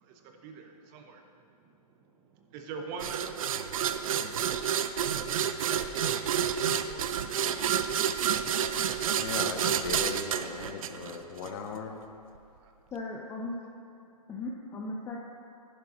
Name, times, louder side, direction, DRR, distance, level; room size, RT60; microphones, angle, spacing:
voice 1, 0.4-1.2 2.5-3.7 3.9-4.3 6.0-7.1 8.0-8.3, right 4 dB, 30° right, 4 dB, 0.8 m, -43 dB
sound 1, 3.0-11.5, right 8 dB, 60° right, 0.5 m, -29 dB
voice 2, 9.2-12.0, left 6 dB, 40° left, 5 dB, 0.9 m, -38 dB
voice 3, 12.9-13.6 14.3-15.2, left 2 dB, 15° left, -2 dB, 0.6 m, -37 dB
11.0 x 10.5 x 3.0 m, 2.8 s
hypercardioid pair, 135°, 20 cm